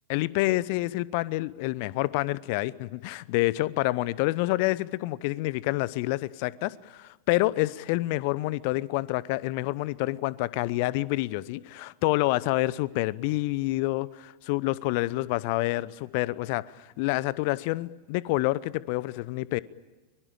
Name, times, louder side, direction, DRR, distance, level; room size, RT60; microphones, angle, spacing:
voice 1, 0.1-16.6 17.0-19.6, left 19 dB, 45° left, 0.8 m, -28 dB
24.0 x 23.5 x 8.8 m
figure-of-eight pair, 90°, 0 cm